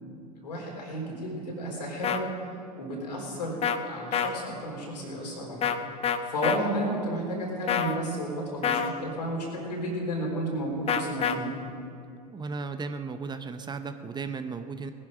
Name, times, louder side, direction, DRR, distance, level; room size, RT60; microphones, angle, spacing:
voice 1, 0.4-2.3 2.8-5.7 6.2-11.5, equal, 85° left, -1 dB, 3.9 m, -32 dB
sound 1, 2.0-2.2 3.6-3.8 4.1-4.3 5.6-5.8 6.0-6.6 7.7-8.0 8.6-8.9 10.9-11.4, left 8 dB, 30° left, 0.8 m, -26 dB
voice 2, 12.3-14.9, right 4 dB, 20° right, 9 dB, 0.8 m, -35 dB
19.0 x 11.0 x 5.1 m, 2.6 s
hypercardioid pair, 80°, 21 cm